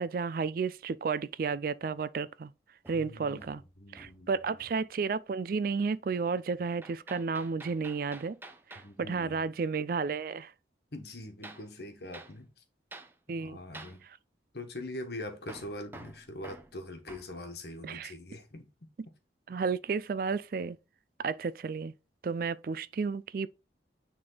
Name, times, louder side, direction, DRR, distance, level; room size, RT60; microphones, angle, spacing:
voice 1, 0.0-2.5 2.9-3.6 3.9-8.4 8.7-10.5 13.3-13.6 14.0-14.2 17.8-18.1 19.5-20.8 21.2-21.9 22.2-23.5, right 5 dB, 50° right, 0.3 m, -32 dB
Hammer, 2.8-4.3 4.6-4.9 6.8-8.9 11.4-11.7 12.1-12.4 12.9-13.2 13.7-14.0 15.5-17.3, right 2 dB, 10° right, 0.6 m, -49 dB
voice 2, 2.9-4.3 8.8-9.4 10.9-12.5 13.3-14.0 14.5-18.7, left 1 dB, 60° left, 1.4 m, -43 dB
9.6 x 3.6 x 3.9 m
head